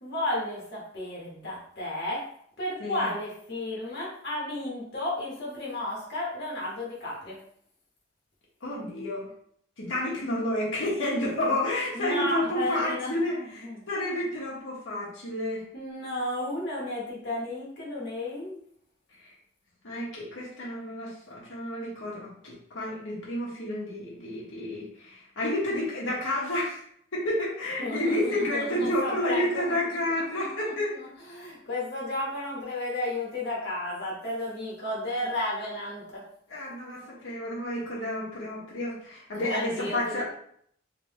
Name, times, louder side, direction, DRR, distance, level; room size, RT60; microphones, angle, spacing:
voice 1, 0.0-2.2 2.6-7.4 11.9-13.8 15.7-18.6 27.8-29.7 30.6-36.2 39.3-40.2, left 1 dB, 55° left, -6 dB, 1.2 m, -33 dB
voice 2, 8.6-9.3 9.8-15.6 19.8-26.8 27.1-30.9 36.5-40.2, left 1 dB, 85° left, -6 dB, 1.3 m, -30 dB
3.4 x 3.0 x 3.1 m, 0.64 s
head